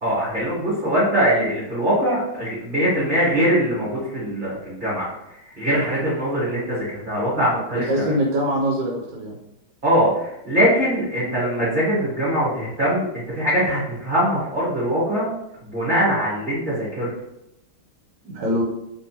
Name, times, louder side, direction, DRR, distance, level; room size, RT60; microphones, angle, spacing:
voice 1, 0.0-5.1 5.4-8.1 9.8-15.3 15.6-17.1, equal, 30° right, -10 dB, 1.2 m, -22 dB
voice 2, 7.9-9.4 18.2-18.6, equal, 65° right, -3 dB, 1.3 m, -23 dB
3.5 x 3.4 x 2.8 m, 0.83 s
omnidirectional pair, 2.3 m